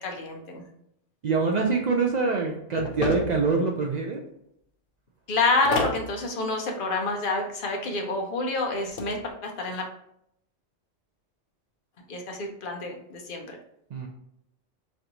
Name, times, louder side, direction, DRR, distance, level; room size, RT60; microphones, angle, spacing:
voice 1, 0.0-0.6 5.3-9.9 12.1-13.6, left 3 dB, 50° left, 2 dB, 0.8 m, -28 dB
voice 2, 1.2-4.2 13.9-14.1, right 4 dB, 90° right, 1 dB, 0.3 m, -25 dB
sound 1, 2.8-3.5 5.6-6.1 8.7-9.1, left 3 dB, 90° left, 1.0 m, -29 dB
5.3 x 2.6 x 2.8 m, 0.74 s
omnidirectional pair, 1.3 m